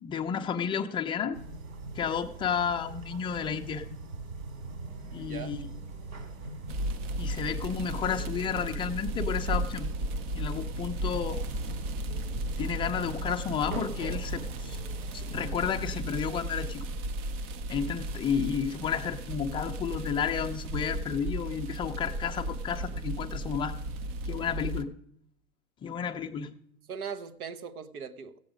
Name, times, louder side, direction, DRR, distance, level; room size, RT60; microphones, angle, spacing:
voice 1, 0.0-1.4 2.0-3.8 5.1-5.7 7.2-9.9 10.3-11.4 12.6-14.8 15.1-16.8 17.7-23.7 24.3-24.9 25.8-26.5, left 7 dB, 10° left, 0.4 m, -32 dB
sound 1, 1.3-16.0, right 3 dB, 60° right, 3.0 m, -42 dB
voice 2, 5.2-5.6 26.9-28.4, right 6 dB, 80° right, 1.2 m, -39 dB
sound 2, 6.7-24.8, right 1 dB, 30° right, 0.6 m, -35 dB
15.5 x 8.1 x 5.0 m
hypercardioid pair, 120°, 43 cm